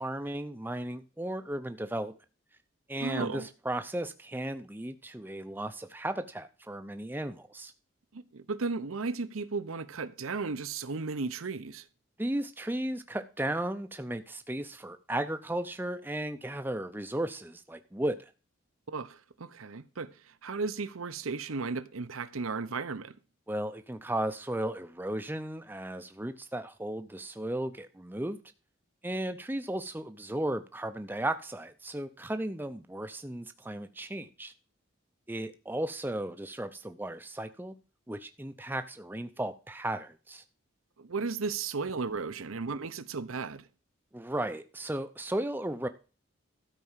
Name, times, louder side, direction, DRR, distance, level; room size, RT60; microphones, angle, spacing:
voice 1, 0.0-2.1 2.9-7.7 12.2-18.3 23.5-28.4 29.0-34.5 35.3-37.7 38.1-40.4 44.1-45.9, right 1 dB, 10° right, 0.5 m, -35 dB
voice 2, 3.0-3.5 8.1-11.8 18.9-23.1 41.0-43.6, right 4 dB, 80° right, 0.8 m, -35 dB
13.0 x 4.9 x 7.3 m
head